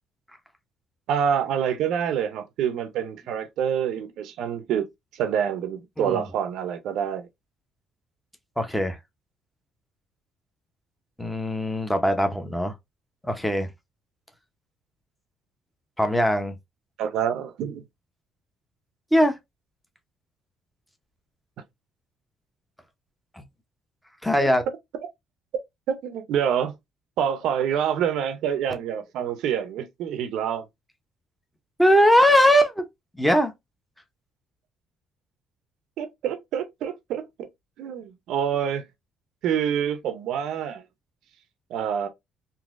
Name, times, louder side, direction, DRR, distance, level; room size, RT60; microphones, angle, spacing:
voice 1, 1.1-4.9 5.2-7.3 17.0-17.8 24.4-24.5 25.9-26.7 27.2-30.7 36.0-37.5 37.8-38.8 39.4-40.8 41.7-42.1, right 8 dB, 75° right, 0.6 m, -27 dB
voice 2, 8.6-9.0 11.2-12.7 13.2-13.7 16.0-16.5 19.1-19.4 23.3-23.4 24.2-24.6 31.8-32.8 33.1-33.5, equal, 5° left, 0.7 m, -20 dB
3.9 x 2.7 x 2.4 m
cardioid pair, 155°, 0 cm